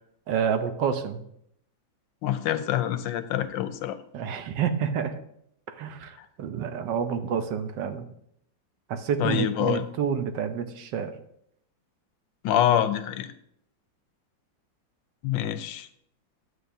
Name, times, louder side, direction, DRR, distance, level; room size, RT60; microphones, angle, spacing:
voice 1, 0.3-1.2 4.1-5.1 5.8-8.1 8.9-11.1, right 7 dB, 70° right, 9 dB, 1.3 m, -28 dB
voice 2, 2.2-4.0 6.2-6.3 9.2-9.8 12.4-13.3 15.2-15.9, left 11 dB, 85° left, 11 dB, 1.3 m, -26 dB
11.0 x 8.0 x 2.7 m, 0.73 s
omnidirectional pair, 2.0 m